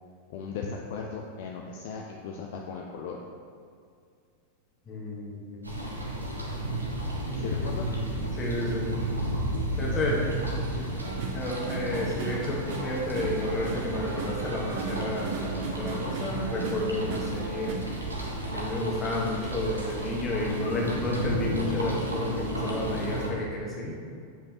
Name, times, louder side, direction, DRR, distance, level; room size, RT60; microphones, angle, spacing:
voice 1, 0.3-3.2 7.3-7.9 9.7-10.4 10.7-10.9, left 5 dB, 50° left, 0 dB, 0.5 m, -37 dB
voice 2, 4.9-5.7 7.2-7.6 8.3-8.9 9.8-10.2 11.3-17.8 18.5-23.9, left 1 dB, 25° left, -3 dB, 1.4 m, -31 dB
sound 1, 5.6-23.3, right 1 dB, 80° right, 0.9 m, -33 dB
sound 2, 11.0-17.7, right 4 dB, 50° right, 0.9 m, -36 dB
7.5 x 5.1 x 3.0 m, 2.3 s
figure-of-eight pair, 90°, 0 cm